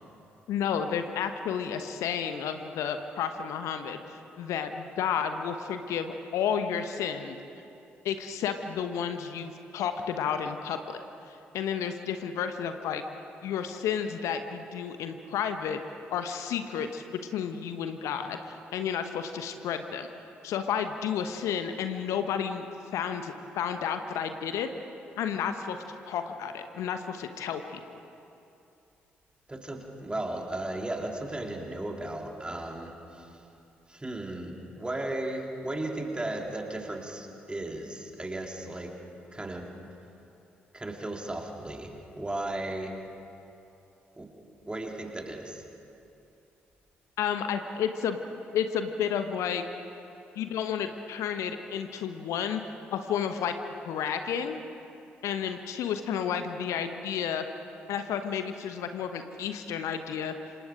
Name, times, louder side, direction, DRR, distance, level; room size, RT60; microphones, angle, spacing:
voice 1, 0.5-7.4 8.0-11.0 11.3-13.0 13.4-15.8 16.1-20.1 20.4-22.6 22.9-24.7 25.2-25.8 26.1-28.0 47.2-48.2 48.5-49.6 50.3-53.5 53.8-54.6 55.2-57.5 57.9-60.3, left 8 dB, 60° left, 8 dB, 1.1 m, -31 dB
voice 2, 29.5-33.4 33.9-38.9 39.3-39.7 40.7-42.9 44.1-44.3 44.6-45.6, right 1 dB, 15° right, 1 dB, 3.4 m, -35 dB
27.5 x 25.0 x 5.1 m, 2.8 s
figure-of-eight pair, 40°, 6 cm